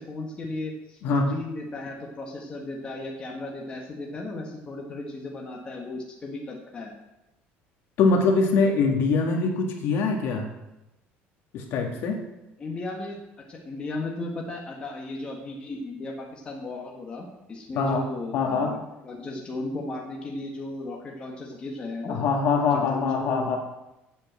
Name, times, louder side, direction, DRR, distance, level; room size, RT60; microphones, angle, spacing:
voice 1, 0.0-1.0 1.3-6.9 12.6-13.2 13.5-18.8 19.0-22.2 22.7-23.6, left 2 dB, 20° left, 0 dB, 1.4 m, -35 dB
voice 2, 8.0-10.5 11.5-12.2 17.8-18.0 18.3-18.7 22.0-23.6, left 4 dB, 55° left, 2 dB, 1.9 m, -23 dB
7.9 x 7.3 x 7.5 m, 0.93 s
cardioid pair, 165°, 5 cm